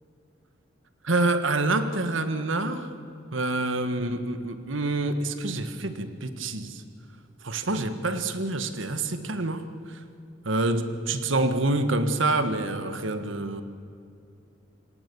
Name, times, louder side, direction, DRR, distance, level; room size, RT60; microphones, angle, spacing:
voice 1, 1.0-2.9 3.3-6.8 7.4-10.0 10.4-13.6, right 2 dB, 85° right, 9 dB, 1.6 m, -27 dB
26.5 x 19.5 x 7.1 m, 2.5 s
head